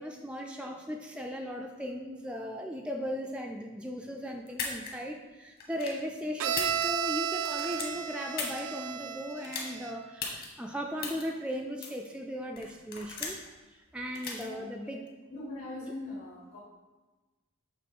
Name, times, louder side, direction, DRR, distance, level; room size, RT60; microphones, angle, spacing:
voice 1, 0.0-13.4 13.7-15.1 15.8-15.9, equal, 5° right, 1 dB, 0.3 m, -37 dB
sound 1, 4.5-4.9 5.6-6.0 6.4-7.1 7.4-8.6 9.4-9.7 10.2-10.5 11.0-11.2 11.8-12.1 12.6-13.5 14.1-14.4, left 5 dB, 45° left, 1.2 m, -37 dB
Bowed string instrument, 6.4-10.1, right 8 dB, 70° right, 0.4 m, -33 dB
voice 2, 14.3-14.9 15.3-16.6, left 2 dB, 70° left, -4 dB, 2.1 m, -42 dB
6.7 x 3.5 x 5.4 m, 1.2 s
head